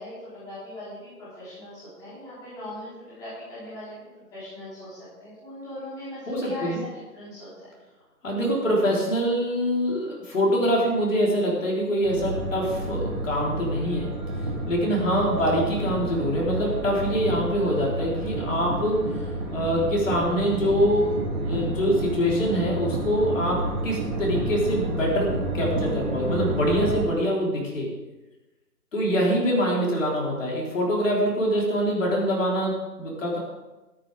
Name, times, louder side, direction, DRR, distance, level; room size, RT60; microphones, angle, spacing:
voice 1, 0.0-6.2 6.5-7.5, left 1 dB, 5° left, -12 dB, 3.5 m, -40 dB
voice 2, 6.3-6.8 8.2-14.1 14.7-19.0 19.5-21.2 21.4-27.9 28.9-33.4, equal, 50° left, -4 dB, 4.2 m, -24 dB
sound 1, 12.0-27.0, right 1 dB, 25° right, 2.5 m, -30 dB
13.5 x 12.5 x 3.6 m, 1.1 s
figure-of-eight pair, 165°, 48 cm